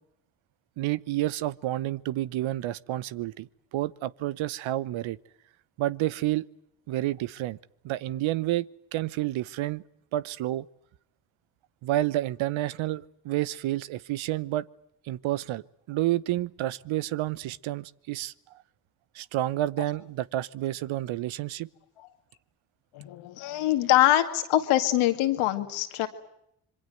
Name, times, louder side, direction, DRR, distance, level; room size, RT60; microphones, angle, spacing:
voice 1, 0.8-5.2 5.8-6.4 6.9-7.6 7.8-8.6 8.9-9.8 10.1-10.7 11.8-14.7 15.0-18.3 19.1-21.7, right 15 dB, 70° right, 0.9 m, -29 dB
voice 2, 22.9-26.1, left 14 dB, 80° left, 2.3 m, -24 dB
26.0 x 23.0 x 7.8 m
hypercardioid pair, 45°, 48 cm